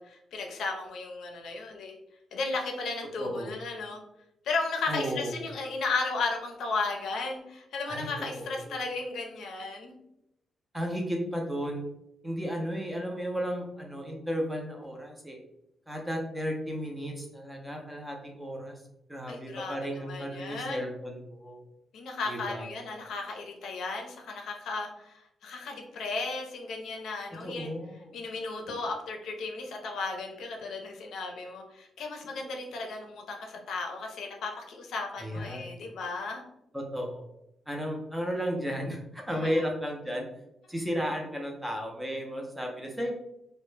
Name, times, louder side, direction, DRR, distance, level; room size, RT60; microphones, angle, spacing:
voice 1, 0.0-1.9 2.3-4.0 4.4-10.0 19.3-20.8 21.9-27.7 28.1-36.4 39.4-39.7, left 3 dB, 75° left, 2 dB, 0.5 m, -35 dB
voice 2, 3.2-3.6 4.9-5.4 7.9-8.1 8.4-8.8 10.7-11.8 12.2-15.4 15.9-18.8 19.1-21.6 22.3-22.7 27.4-28.1 35.2-35.7 36.7-37.3 37.7-40.3 40.7-43.1, equal, 5° right, 1 dB, 0.4 m, -34 dB
2.1 x 2.0 x 3.1 m, 0.82 s
wide cardioid pair, 160°, 0 cm